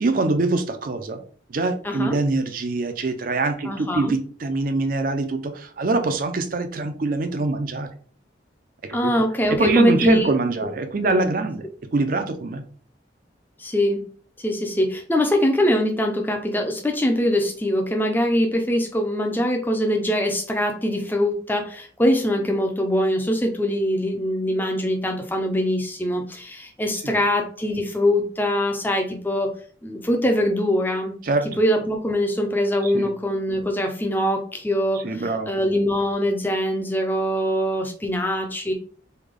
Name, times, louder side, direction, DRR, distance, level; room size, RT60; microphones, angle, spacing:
voice 1, 0.0-1.2 1.5-7.9 9.0-9.1 9.5-11.7 11.9-12.6 27.0-27.2 31.2-31.5 32.8-33.1 35.0-35.5, right 3 dB, 50° right, 7 dB, 0.5 m, -24 dB
voice 2, 1.8-2.2 3.6-4.1 8.9-10.3 10.6-10.7 11.0-11.3 13.6-14.1 14.4-29.5 29.8-31.1 31.6-35.0 35.5-38.7, equal, 10° left, 2 dB, 0.5 m, -23 dB
3.3 x 2.2 x 3.5 m, 0.44 s
head